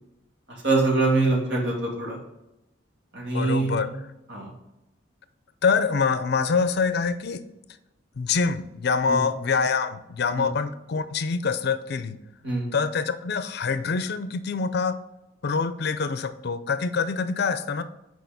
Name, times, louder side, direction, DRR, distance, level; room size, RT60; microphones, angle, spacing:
voice 1, 0.6-2.2 3.1-3.8 4.3-4.5 9.1-9.2 12.4-12.7, right 2 dB, 65° right, -2 dB, 2.3 m, -23 dB
voice 2, 3.3-3.9 5.6-7.4 8.2-12.2 12.7-15.0 15.4-17.8, left 5 dB, 60° left, 11 dB, 0.5 m, -25 dB
6.6 x 4.8 x 4.0 m, 0.92 s
head